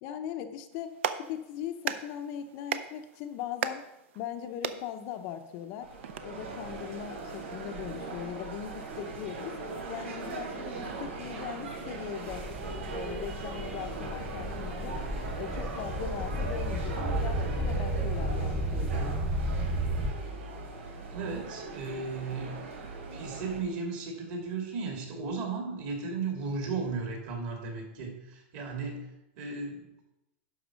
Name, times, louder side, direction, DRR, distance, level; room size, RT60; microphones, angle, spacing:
voice 1, 0.0-3.8 4.1-5.9 6.2-9.6 9.9-12.5 12.9-15.0 15.3-19.2, left 9 dB, 40° left, 7 dB, 0.6 m, -39 dB
Clapping, 0.7-6.2, right 9 dB, 70° right, 0.7 m, -38 dB
sound 1, 5.8-23.6, right 3 dB, 90° right, 3.1 m, -39 dB
sound 2, 12.3-20.1, right 1 dB, ahead, 0.6 m, -33 dB
voice 2, 21.1-22.6 23.1-29.8, right 4 dB, 45° right, 1 dB, 2.7 m, -35 dB
11.5 x 4.7 x 6.2 m, 0.89 s
supercardioid pair, 165°, 7 cm